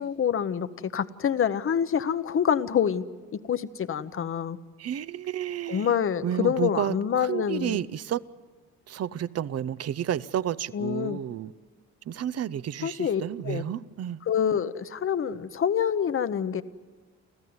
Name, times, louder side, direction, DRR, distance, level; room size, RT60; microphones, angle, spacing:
voice 1, 0.0-3.0 3.3-4.6 5.7-7.8 10.7-11.2 12.8-13.6 14.3-16.6, left 8 dB, 45° left, 1.0 m, -26 dB
voice 2, 4.8-5.9 6.2-8.2 8.9-11.5 12.1-14.2, right 10 dB, 55° right, 0.7 m, -31 dB
29.5 x 14.0 x 9.5 m
cardioid pair, 90°, 30 cm